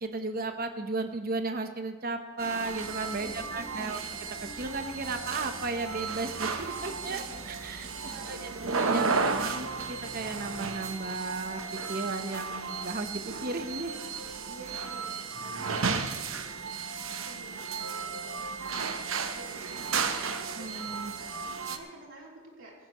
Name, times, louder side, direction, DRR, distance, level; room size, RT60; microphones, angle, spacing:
voice 1, 0.0-8.5 8.8-14.0 20.6-21.1, right 3 dB, 45° right, 7 dB, 0.9 m, -35 dB
sound 1, 2.4-21.8, right 5 dB, 85° right, 1.0 m, -34 dB
sound 2, 2.6-10.6, equal, ahead, 1.9 m, -50 dB
voice 2, 3.0-3.9 6.9-7.5 7.8-8.7 14.5-15.1 15.4-16.7 17.1-22.9, right 2 dB, 70° right, -3 dB, 3.5 m, -50 dB
16.5 x 15.5 x 3.1 m, 1.4 s
head